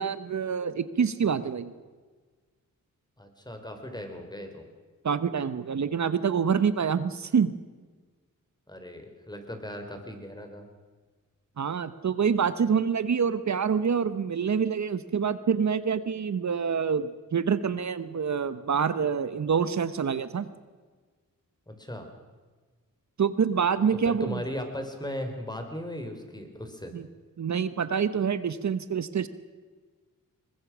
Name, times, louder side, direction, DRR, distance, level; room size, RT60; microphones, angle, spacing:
voice 1, 0.0-1.7 5.0-7.5 11.6-20.5 23.2-24.4 26.9-27.1 27.4-29.3, right 6 dB, 55° right, 13 dB, 1.1 m, -26 dB
voice 2, 3.2-4.7 8.7-10.7 21.7-22.1 24.0-26.9, equal, 10° left, 5 dB, 4.4 m, -37 dB
22.0 x 20.5 x 6.2 m, 1.4 s
cardioid pair, 65°, 33 cm